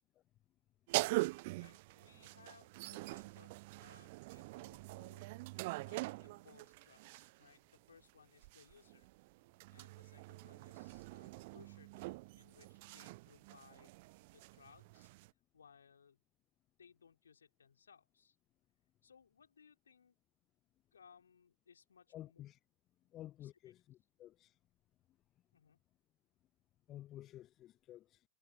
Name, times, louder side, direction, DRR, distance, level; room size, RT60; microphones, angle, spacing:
sound 1, 0.9-7.5 8.4-15.3, right 23 dB, 50° right, 0.5 m, -43 dB
voice 1, 1.5-5.3 5.8-9.1 9.7-14.0 14.3-15.1 15.5-16.2 16.8-18.4 19.0-20.2 20.9-22.4 23.4-23.5 25.5-25.8, left 6 dB, 70° left, 4.2 m, -65 dB
voice 2, 22.1-22.6 23.1-24.5 26.9-28.2, left 13 dB, 35° left, 0.8 m, -52 dB
figure-of-eight pair, 90°, 0 cm